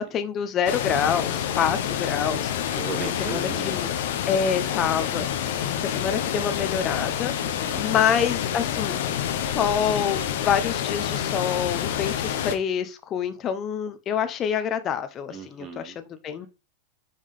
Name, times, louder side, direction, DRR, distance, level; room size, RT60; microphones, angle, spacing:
voice 1, 0.0-2.5 3.2-3.9 4.2-5.3 5.8-7.3 7.8-9.0 9.5-16.5, left 8 dB, 30° left, 10 dB, 0.8 m, -26 dB
sound 1, 0.7-12.6, left 9 dB, 75° left, 0.9 m, -28 dB
voice 2, 2.8-3.8 7.4-8.0 15.3-16.0, right 5 dB, 30° right, 4 dB, 2.0 m, -37 dB
5.6 x 3.8 x 4.9 m, 0.31 s
supercardioid pair, 125°, 0 cm